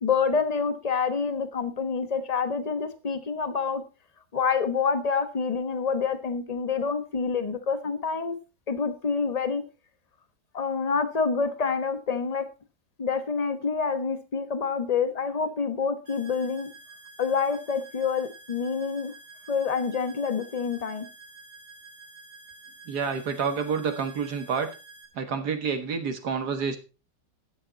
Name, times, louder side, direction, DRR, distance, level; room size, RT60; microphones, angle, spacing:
voice 1, 0.0-3.8 4.3-8.3 8.7-9.6 10.5-12.4 13.0-16.7 17.2-19.1 19.5-21.1, left 5 dB, 25° left, 10 dB, 1.0 m, -27 dB
sound 1, 16.1-25.1, right 3 dB, 80° right, 3.2 m, -49 dB
voice 2, 22.9-24.7 25.2-26.8, right 6 dB, 65° right, 7 dB, 1.9 m, -28 dB
12.5 x 8.7 x 4.0 m, 0.32 s
omnidirectional pair, 1.9 m